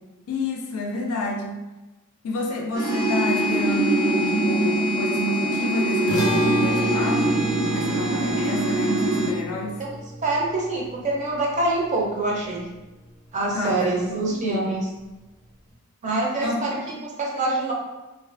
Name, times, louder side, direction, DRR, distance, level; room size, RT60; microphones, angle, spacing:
voice 1, 0.3-1.6 2.2-7.4 7.7-9.8 13.5-14.7 16.4-17.0, left 1 dB, 75° left, 1 dB, 0.4 m, -29 dB
sound 1, 2.7-9.3, right 1 dB, 80° right, 0.7 m, -23 dB
sound 2, 6.1-12.6, equal, 20° left, 0.6 m, -31 dB
voice 2, 10.2-12.7 13.3-14.9 16.0-16.8 17.0-17.7, right 2 dB, 35° right, -3 dB, 0.5 m, -25 dB
2.4 x 2.3 x 2.4 m, 1.1 s
head